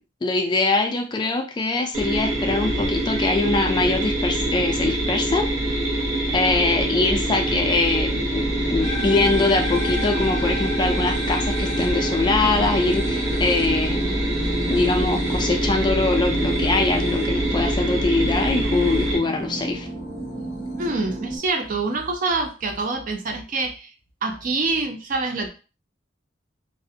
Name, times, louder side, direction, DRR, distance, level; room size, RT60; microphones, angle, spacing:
voice 1, 0.2-5.5 6.3-14.2 14.7-19.9, left 3 dB, 25° left, 4 dB, 0.3 m, -23 dB
sound 1, 1.9-19.2, right 1 dB, 80° right, 0.7 m, -24 dB
sound 2, 8.4-21.4, right 1 dB, 15° right, 0.9 m, -34 dB
sound 3, 8.8-17.2, left 3 dB, 75° left, 0.6 m, -35 dB
voice 2, 20.8-23.9 24.2-25.5, right 3 dB, 45° right, 4 dB, 0.4 m, -26 dB
2.4 x 2.1 x 2.6 m, 0.33 s
head